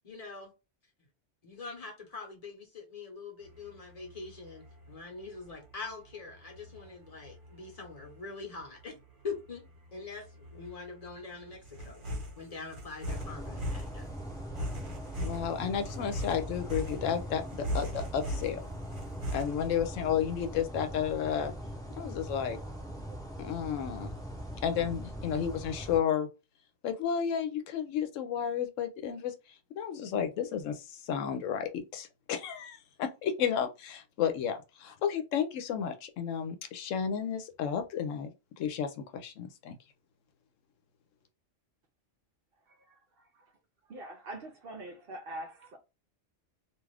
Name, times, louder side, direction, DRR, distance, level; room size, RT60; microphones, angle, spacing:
voice 1, 0.0-0.5 1.4-8.9 9.2-14.1, left 4 dB, 35° left, 0.9 m, -44 dB
sound 1, 3.4-19.7, equal, 45° right, 1.1 m, -41 dB
sound 2, 13.0-26.0, equal, 5° left, 0.6 m, -41 dB
voice 2, 15.2-18.7 19.3-21.5 22.0-22.6 23.4-24.1 24.6-26.3 26.8-29.3 29.8-39.8, left 8 dB, 90° left, 0.9 m, -32 dB
voice 3, 42.7-43.5 43.9-45.8, right 1 dB, 60° right, 0.6 m, -44 dB
2.5 x 2.4 x 3.2 m
omnidirectional pair, 1.3 m